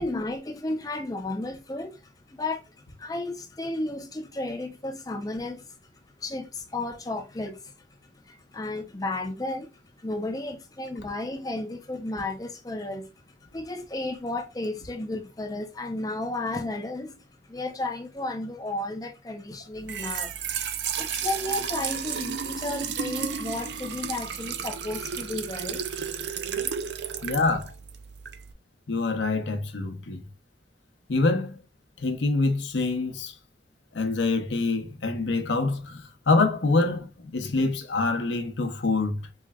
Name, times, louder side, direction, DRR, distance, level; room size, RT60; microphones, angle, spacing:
voice 1, 0.0-2.0 2.3-5.7 6.2-7.7 8.2-9.7 10.0-13.1 13.5-17.2 17.4-20.4 21.0-26.0 26.8-26.9, left 2 dB, 20° left, 0.6 m, -33 dB
Trickle dribble / Fill (with liquid), 19.7-28.5, right 7 dB, 70° right, 0.5 m, -33 dB
voice 2, 27.2-27.7 28.9-30.3 31.1-31.6 32.0-33.4 33.9-39.3, left 3 dB, 80° left, 0.9 m, -25 dB
4.6 x 3.2 x 2.3 m
head